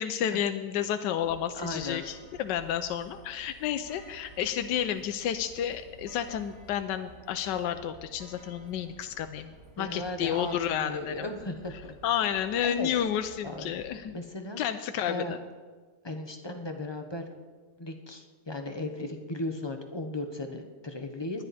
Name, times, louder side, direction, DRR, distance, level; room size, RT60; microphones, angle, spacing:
voice 1, 0.0-11.1 12.0-14.1 14.6-15.4, left 9 dB, 85° left, 8 dB, 1.3 m, -31 dB
sound 1, 1.2-13.9, right 3 dB, 40° right, 2.3 m, -53 dB
voice 2, 1.5-2.0 9.8-12.0 12.6-12.9 13.4-13.8 14.1-14.6 15.0-15.4 16.0-17.3 17.8-21.4, left 2 dB, 20° left, 5 dB, 0.8 m, -36 dB
20.0 x 11.0 x 4.2 m, 1.4 s
omnidirectional pair, 1.9 m